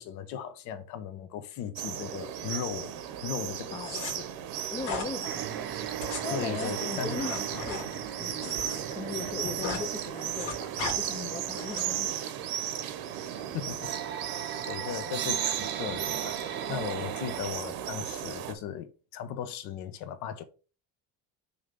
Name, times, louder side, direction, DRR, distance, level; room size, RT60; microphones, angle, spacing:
voice 1, 0.0-2.9 3.2-4.2 6.3-7.2 13.5-13.9 14.7-20.4, left 9 dB, 60° left, 0.9 m, -37 dB
sound 1, 1.8-18.5, right 10 dB, 80° right, 1.0 m, -35 dB
sound 2, 3.8-4.1 4.8-5.1 5.8-8.8 9.1-9.9 10.1-11.0 11.5-12.0, left 4 dB, 80° left, 2.2 m, -37 dB
voice 2, 4.7-5.7 6.2-8.6 8.9-12.3, left 5 dB, 15° left, 0.5 m, -39 dB
sound 3, 5.2-17.4, right 10 dB, 35° right, 0.7 m, -40 dB
5.7 x 3.4 x 5.2 m
cardioid pair, 170°, 33 cm